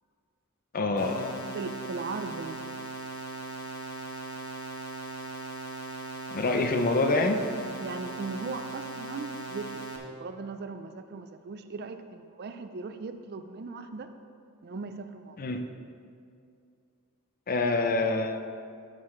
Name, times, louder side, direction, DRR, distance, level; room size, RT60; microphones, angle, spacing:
voice 1, 0.7-1.3 6.3-7.4 15.4-15.6 17.5-18.4, left 2 dB, 40° left, 6 dB, 0.6 m, -26 dB
sound 1, 1.0-10.0, right 2 dB, 90° left, 1.0 m, -39 dB
voice 2, 1.5-2.6 7.8-14.1 14.6-15.4, right 4 dB, 50° right, 9 dB, 0.4 m, -38 dB
13.0 x 5.7 x 3.2 m, 2.3 s
head